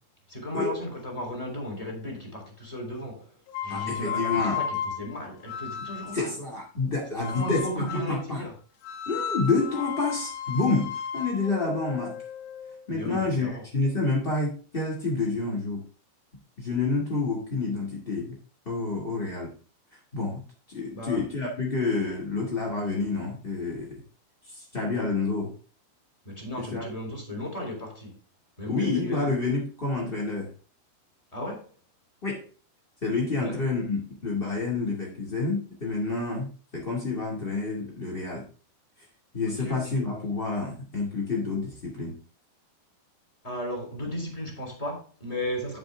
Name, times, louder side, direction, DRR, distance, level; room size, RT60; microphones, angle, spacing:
voice 1, 0.3-3.3 3.6-6.3 7.2-8.5 12.9-13.6 20.9-21.2 26.2-28.2 28.6-29.3 31.3-31.7 33.4-33.7 39.4-40.0 43.4-45.8, left 1 dB, 10° left, 2.4 m, -35 dB
sound 1, 3.5-6.3 7.2-8.2 8.8-12.8, left 7 dB, 90° left, 3.6 m, -34 dB
voice 2, 3.7-4.6 6.1-8.4 9.0-12.2 12.9-15.8 16.6-18.4 18.6-19.5 20.1-20.4 20.7-24.0 24.5-25.5 26.6-26.8 28.7-30.5 32.2-32.4 33.0-38.5 39.3-42.2, left 3 dB, 30° left, 0.9 m, -28 dB
10.0 x 7.5 x 3.5 m
omnidirectional pair, 5.3 m